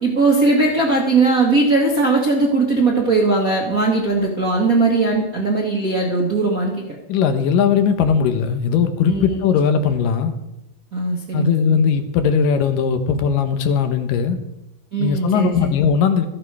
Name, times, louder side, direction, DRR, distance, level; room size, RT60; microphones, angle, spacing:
voice 1, 0.0-7.0 9.1-9.5 10.9-11.8 14.9-15.7, right 3 dB, 45° right, -2 dB, 1.2 m, -19 dB
voice 2, 7.1-10.3 11.3-14.4 15.0-16.3, left 6 dB, 80° left, 8 dB, 2.7 m, -18 dB
13.5 x 11.0 x 4.8 m, 0.90 s
omnidirectional pair, 3.8 m